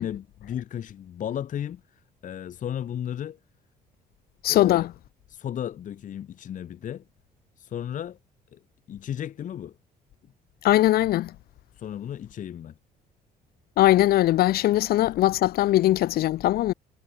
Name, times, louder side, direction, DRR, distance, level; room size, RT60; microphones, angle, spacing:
voice 1, 0.0-1.8 2.2-3.4 4.5-4.9 5.3-7.0 7.6-8.2 8.5-8.6 8.9-9.7 11.8-12.7, left 10 dB, 50° left, 1.5 m, -34 dB
voice 2, 4.4-4.9 10.6-11.3 13.8-16.7, left 15 dB, 65° left, 0.7 m, -20 dB
cardioid pair, 110°, 17 cm